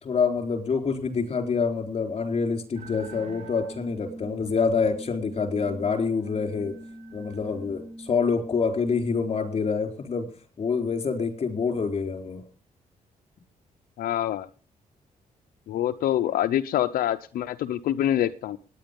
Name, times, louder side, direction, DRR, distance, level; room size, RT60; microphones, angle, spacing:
voice 1, 0.0-6.8 7.1-10.3 10.6-12.4, left 5 dB, 45° left, 5 dB, 4.3 m, -26 dB
sound 1, 2.7-9.4, right 1 dB, 50° right, 3.4 m, -42 dB
voice 2, 14.0-14.5 15.7-18.6, left 11 dB, 90° left, 9 dB, 0.7 m, -25 dB
18.0 x 10.0 x 5.3 m, 0.38 s
cardioid pair, 100°, 15 cm